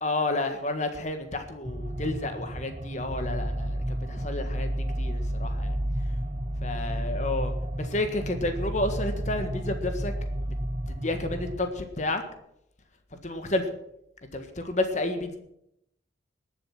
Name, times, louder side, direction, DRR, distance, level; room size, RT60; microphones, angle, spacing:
voice 1, 0.0-4.7 5.0-5.8 6.6-10.1 10.4-10.5 10.9-12.2 13.1-13.6 14.3-15.4, left 2 dB, 40° left, 7 dB, 1.6 m, -31 dB
sound 1, 1.6-11.6, right 1 dB, 35° right, 1.2 m, -31 dB
20.0 x 7.5 x 6.0 m, 0.78 s
head